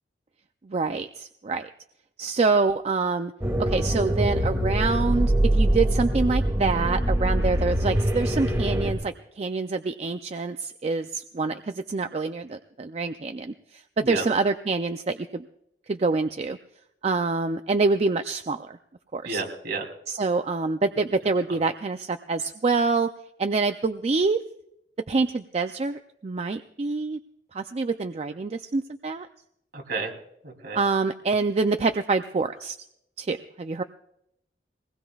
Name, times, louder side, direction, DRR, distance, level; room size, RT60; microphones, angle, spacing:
voice 1, 0.6-1.7 2.2-3.3 3.6-15.5 15.9-16.6 17.0-18.8 19.1-19.4 20.1-23.1 23.4-24.4 25.1-27.2 27.5-29.3 30.7-32.8 33.2-33.8, right 3 dB, 35° right, 8 dB, 0.4 m, -26 dB
sound 1, 3.4-8.9, right 1 dB, 15° right, 2.4 m, -23 dB
voice 2, 19.2-19.9 21.5-21.6 29.7-30.1 30.4-30.8, right 3 dB, 60° right, 1 dB, 3.1 m, -31 dB
22.5 x 19.5 x 2.4 m, 0.77 s
head